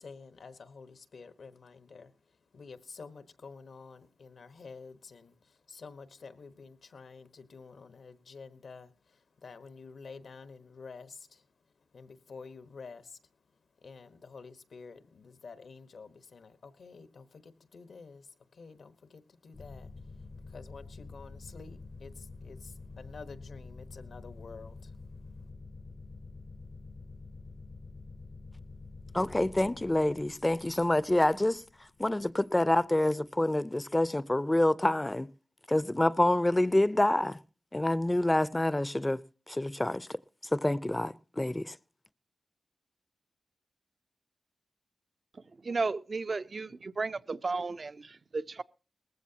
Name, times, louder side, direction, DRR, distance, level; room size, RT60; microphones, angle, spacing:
voice 1, 0.0-2.1 2.5-5.3 5.7-8.9 9.4-11.4 11.9-13.2 13.8-18.3 18.5-19.9 20.5-24.9, left 4 dB, 75° left, 1.1 m, -49 dB
sound 1, 19.5-32.8, left 3 dB, 55° left, 0.7 m, -48 dB
voice 2, 29.1-31.6 32.0-35.3 35.7-37.4 37.7-39.2 39.5-40.1 40.5-41.8, left 1 dB, 20° left, 0.5 m, -27 dB
voice 3, 45.6-48.6, right 3 dB, 50° right, 0.6 m, -34 dB
19.0 x 15.0 x 2.8 m
cardioid pair, 65°, 0 cm